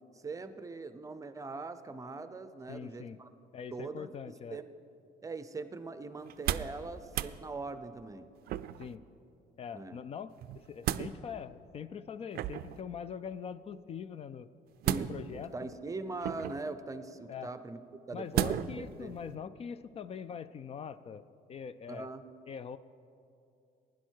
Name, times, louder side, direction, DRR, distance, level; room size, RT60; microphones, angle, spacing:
voice 1, 0.1-3.3 3.7-4.7 5.2-8.3 9.7-10.0 14.9-17.8 18.1-19.1 21.9-22.3, right 3 dB, 20° right, 11 dB, 0.6 m, -41 dB
voice 2, 2.7-3.2 3.5-4.6 8.8-9.0 9.6-14.5 14.9-15.5 17.3-17.5 18.1-21.2 21.5-22.1 22.5-22.8, left 7 dB, 35° left, 15 dB, 0.4 m, -43 dB
sound 1, 6.2-6.8 7.1-7.4 8.5-8.9 10.4-11.1 12.3-12.8 14.8-15.4 16.2-16.7 18.3-18.8 19.3-19.4, right 12 dB, 65° right, 0.4 m, -33 dB
16.0 x 10.5 x 4.6 m, 2.6 s
cardioid pair, 110°, 17 cm